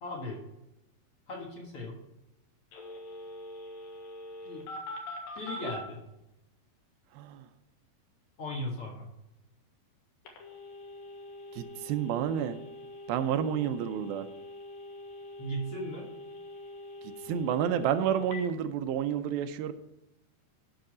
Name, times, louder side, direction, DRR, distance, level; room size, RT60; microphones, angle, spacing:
voice 1, 0.0-0.4 1.3-2.0 4.5-4.7 5.4-6.0 8.4-9.1 15.4-16.1, equal, 50° left, -2 dB, 1.9 m, -37 dB
Telephone, 2.7-5.8 10.2-18.4, left 2 dB, 75° left, 3.3 m, -44 dB
voice 2, 11.6-12.6 13.1-14.3 17.3-19.7, right 9 dB, 85° right, 9 dB, 2.5 m, -30 dB
13.0 x 5.8 x 4.9 m, 0.90 s
omnidirectional pair, 4.2 m